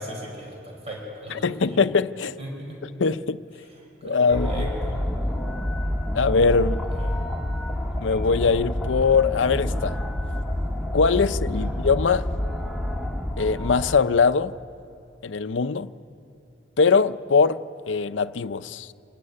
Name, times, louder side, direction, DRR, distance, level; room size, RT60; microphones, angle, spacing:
voice 1, 0.0-1.8 2.4-2.8 4.0-4.9 7.0-7.2 11.5-11.7, right 1 dB, 35° right, 4.8 m, -37 dB
voice 2, 1.4-2.4 3.0-3.4 4.0-4.7 6.1-6.8 8.0-10.0 10.9-12.3 13.4-14.5 15.2-15.9 16.8-17.6 17.9-18.9, left 5 dB, 80° left, 0.6 m, -21 dB
sound 1, 4.3-14.0, left 1 dB, ahead, 1.5 m, -28 dB
26.0 x 19.5 x 9.9 m
head